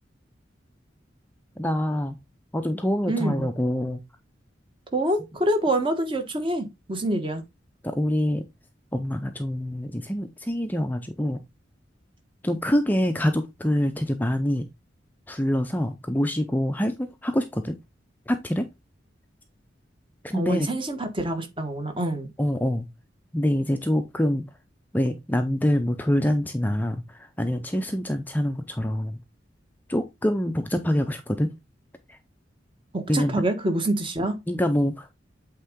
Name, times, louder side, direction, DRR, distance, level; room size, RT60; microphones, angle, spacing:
voice 1, 1.6-2.2 2.5-4.0 7.8-8.4 8.9-11.4 12.4-14.7 15.3-17.8 18.3-18.7 20.2-20.7 22.4-22.9 23.3-24.4 24.9-29.2 29.9-31.5 32.1-32.2 33.1-33.4 34.5-35.2, equal, 10° left, 0.5 m, -25 dB
voice 2, 3.1-3.5 4.9-7.4 20.3-22.3 32.9-34.4, right 1 dB, 30° right, 1.3 m, -26 dB
8.2 x 3.6 x 3.6 m
head